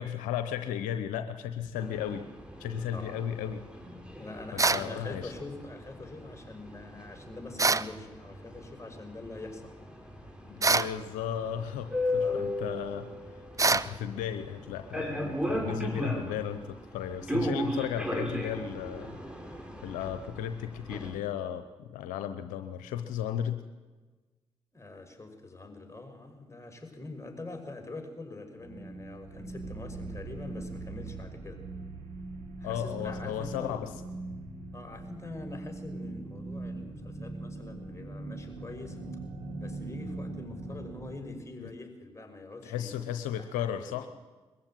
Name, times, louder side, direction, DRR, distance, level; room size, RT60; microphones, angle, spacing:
voice 1, 0.0-2.3 2.6-3.6 4.5-5.3 10.4-13.1 13.6-19.2 19.8-23.6 32.6-33.9 41.6-41.7 42.6-44.1, left 9 dB, 85° left, 8 dB, 0.9 m, -35 dB
sound 1, 1.8-21.2, left 1 dB, 10° right, 5.7 m, -37 dB
voice 2, 2.9-3.2 4.1-9.8 12.1-12.5 24.7-31.6 32.6-33.9 34.7-39.0 39.6-43.0 43.4-44.0, left 2 dB, 20° left, 4 dB, 5.9 m, -44 dB
sound 2, 4.6-4.9 7.6-7.9 10.6-11.0 13.6-13.9, right 3 dB, 25° right, 0.8 m, -24 dB
sound 3, 28.6-41.3, right 2 dB, 85° right, 2.7 m, -41 dB
22.0 x 15.0 x 9.2 m, 1.3 s
hypercardioid pair, 40°, 13 cm